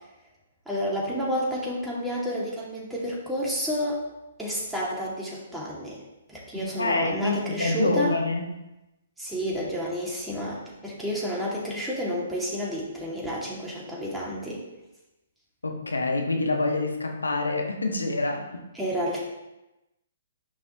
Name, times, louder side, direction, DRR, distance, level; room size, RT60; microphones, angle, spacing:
voice 1, 0.7-4.0 4.4-6.0 6.3-8.2 9.2-14.6 18.7-19.2, equal, 5° right, -6 dB, 2.2 m, -30 dB
voice 2, 6.5-8.5 15.6-18.6, left 2 dB, 85° left, 2 dB, 1.5 m, -27 dB
10.0 x 5.5 x 2.9 m, 0.97 s
figure-of-eight pair, 130°, 0 cm